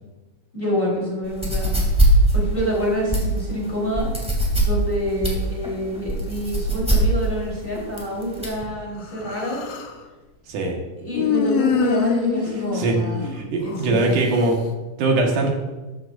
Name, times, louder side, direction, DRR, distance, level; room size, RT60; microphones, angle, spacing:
voice 1, 0.5-1.8 2.3-4.1 4.6-9.6 11.0-13.2 13.6-14.2, equal, 15° left, -5 dB, 4.2 m, -26 dB
sound 1, 1.2-8.6, right 2 dB, ahead, 2.4 m, -22 dB
Human voice, 9.0-10.0 11.1-13.9, left 7 dB, 65° left, 1.7 m, -25 dB
voice 2, 13.3-14.6 15.0-15.5, right 2 dB, 85° right, 1 dB, 3.1 m, -21 dB
13.0 x 13.0 x 2.7 m, 1.2 s
omnidirectional pair, 3.5 m